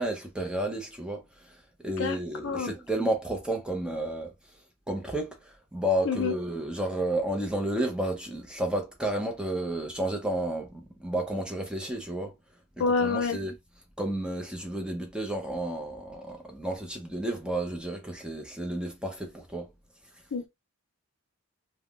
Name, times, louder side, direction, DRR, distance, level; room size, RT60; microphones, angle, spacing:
voice 1, 0.0-4.3 4.9-12.3 12.8-13.5 14.0-19.7, right 1 dB, 5° right, 0.6 m, -31 dB
voice 2, 12.8-13.4 20.3-20.5, left 4 dB, 60° left, 0.5 m, -27 dB
3.5 x 2.1 x 2.4 m
head